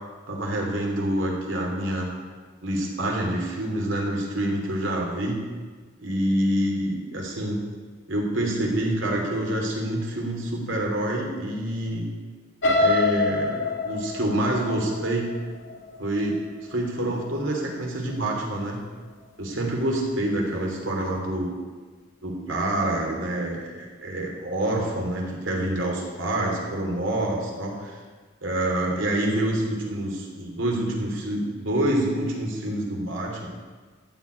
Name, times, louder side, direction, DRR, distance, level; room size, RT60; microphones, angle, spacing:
voice 1, 0.3-2.1 2.6-5.4 6.0-7.6 8.1-12.0 12.8-15.3 16.0-16.4 16.7-18.8 19.4-21.5 22.2-28.0 28.4-33.5, right 1 dB, 75° right, -1 dB, 2.9 m, -27 dB
sound 1, 12.6-16.6 17.1-17.4 17.7-17.8, left 3 dB, 75° left, 2.2 m, -26 dB
14.5 x 5.2 x 9.1 m, 1.5 s
head